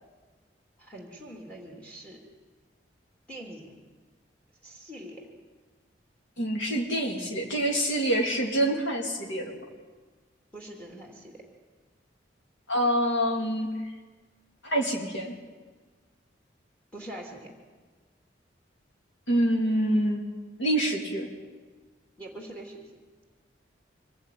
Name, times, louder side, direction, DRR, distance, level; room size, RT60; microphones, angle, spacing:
voice 1, 0.8-2.2 3.3-3.8 4.6-5.3 10.5-11.4 16.9-17.5 22.2-22.8, right 1 dB, 5° left, 1 dB, 2.9 m, -43 dB
voice 2, 6.4-9.6 12.7-13.7 14.6-15.3 19.3-20.2 20.6-21.3, right 1 dB, 85° left, 0 dB, 3.2 m, -26 dB
24.5 x 18.0 x 9.5 m, 1.4 s
head